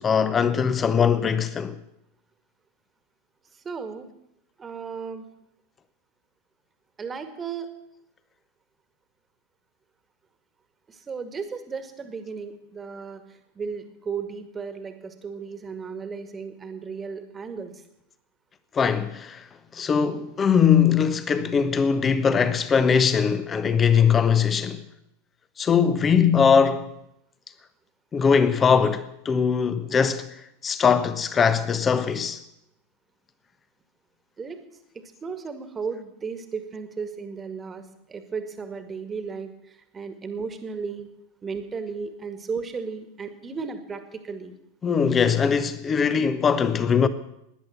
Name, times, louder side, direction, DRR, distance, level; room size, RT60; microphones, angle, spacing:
voice 1, 0.0-1.8 18.7-19.4 19.7-24.8 25.6-26.9 28.1-30.3 30.6-32.4 44.8-47.1, left 6 dB, 20° left, 1.1 m, -21 dB
voice 2, 3.6-4.1 4.6-5.3 7.0-7.7 10.9-17.8 34.4-34.6 34.9-41.1 41.4-44.6, right 5 dB, 20° right, 1.9 m, -35 dB
18.0 x 10.5 x 7.2 m
figure-of-eight pair, 90°, 0 cm